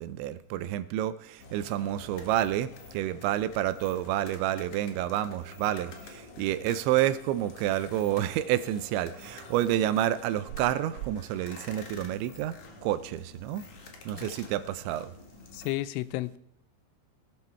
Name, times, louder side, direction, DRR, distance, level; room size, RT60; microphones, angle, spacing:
voice 1, 0.0-12.6 12.8-13.6 14.1-15.1, right 12 dB, 80° right, 13 dB, 2.9 m, -29 dB
sound 1, 1.4-15.7, left 4 dB, 60° left, 2.0 m, -48 dB
voice 2, 15.5-16.4, left 17 dB, 90° left, 17 dB, 3.1 m, -32 dB
18.0 x 11.5 x 4.4 m, 0.71 s
omnidirectional pair, 5.4 m